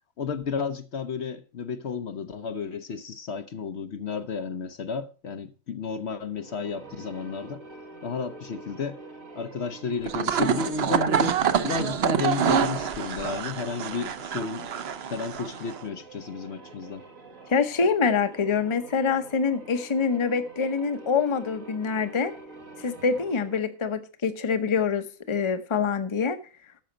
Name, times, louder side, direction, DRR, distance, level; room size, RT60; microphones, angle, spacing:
voice 1, 0.2-7.6 8.0-9.0 9.3-14.7 15.1-17.0, left 5 dB, 60° left, 1.0 m, -32 dB
sound 1, 6.3-23.8, right 3 dB, 85° right, 2.5 m, -46 dB
sound 2, 10.0-15.8, right 7 dB, 55° right, 0.9 m, -26 dB
voice 2, 17.5-22.3 22.8-26.4, left 5 dB, 25° left, 0.8 m, -25 dB
12.0 x 7.0 x 5.1 m
omnidirectional pair, 1.4 m